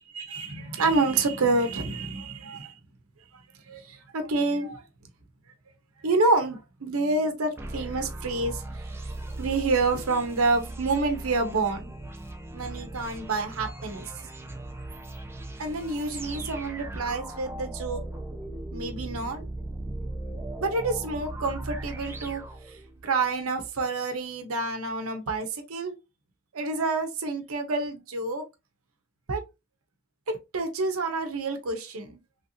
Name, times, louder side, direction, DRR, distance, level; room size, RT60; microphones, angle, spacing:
voice 1, 0.1-2.7 3.7-4.8 6.0-8.6 9.4-11.9 12.5-14.1 15.6-18.0 18.7-19.5 20.6-22.4 23.0-25.9 26.5-28.4 29.3-29.4 30.3-32.2, right 3 dB, 90° right, 0.7 m, -28 dB
sound 1, 7.6-23.2, right 1 dB, 10° right, 0.3 m, -38 dB
3.1 x 2.6 x 2.8 m
head